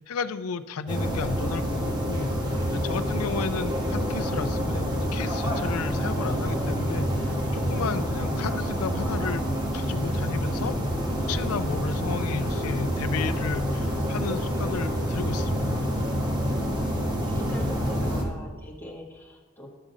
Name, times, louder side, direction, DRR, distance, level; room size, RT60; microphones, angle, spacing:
voice 1, 0.0-2.3 2.7-9.4 9.7-10.7 11.3-15.8, left 5 dB, 85° left, 11 dB, 0.5 m, -33 dB
sound 1, 0.9-18.2, equal, 20° right, 1.2 m, -27 dB
voice 2, 3.0-3.7 16.4-19.7, left 1 dB, 10° left, -2 dB, 1.3 m, -43 dB
11.5 x 3.8 x 7.2 m, 1.3 s
head